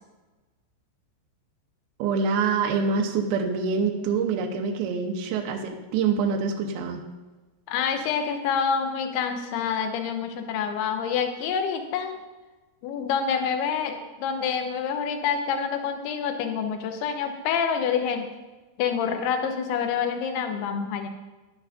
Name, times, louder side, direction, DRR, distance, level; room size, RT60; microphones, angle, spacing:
voice 1, 2.0-7.1, right 5 dB, 75° right, 2 dB, 2.3 m, -25 dB
voice 2, 7.7-12.2 12.8-18.3 18.8-21.1, left 7 dB, 75° left, 5 dB, 2.6 m, -27 dB
11.5 x 11.0 x 2.5 m, 1.2 s
omnidirectional pair, 5.1 m